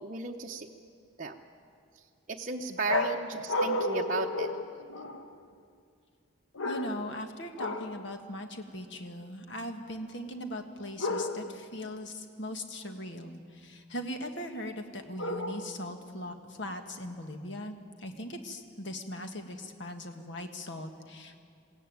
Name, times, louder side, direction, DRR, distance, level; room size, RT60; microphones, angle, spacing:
voice 1, 0.0-0.7 1.2-1.4 2.3-4.5, right 3 dB, 40° right, 0 dB, 0.8 m, -34 dB
sound 1, 2.9-5.4 6.6-7.2 7.6-8.0 11.0-11.7 15.2-15.9, left 2 dB, 80° left, 1.1 m, -32 dB
voice 2, 6.6-21.4, left 1 dB, 60° left, 5 dB, 1.7 m, -40 dB
21.0 x 16.5 x 9.4 m, 2.3 s
head